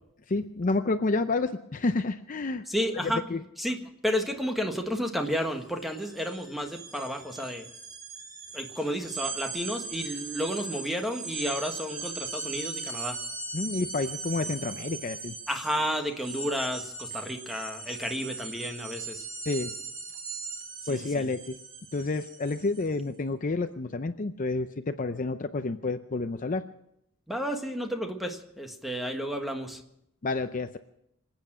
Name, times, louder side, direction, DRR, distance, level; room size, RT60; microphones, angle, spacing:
voice 1, 0.3-2.6 3.0-3.4 13.5-15.3 19.5-19.7 20.9-21.5 21.9-26.6 30.2-30.8, left 3 dB, 40° left, 9 dB, 0.6 m, -29 dB
voice 2, 2.7-3.2 3.6-7.7 8.5-13.2 15.5-19.2 20.9-21.3 27.3-29.8, equal, ahead, 4 dB, 1.5 m, -32 dB
sound 1, 5.2-5.4 5.7-22.9, right 4 dB, 65° right, 4.7 m, -39 dB
26.0 x 8.9 x 6.1 m, 0.80 s
head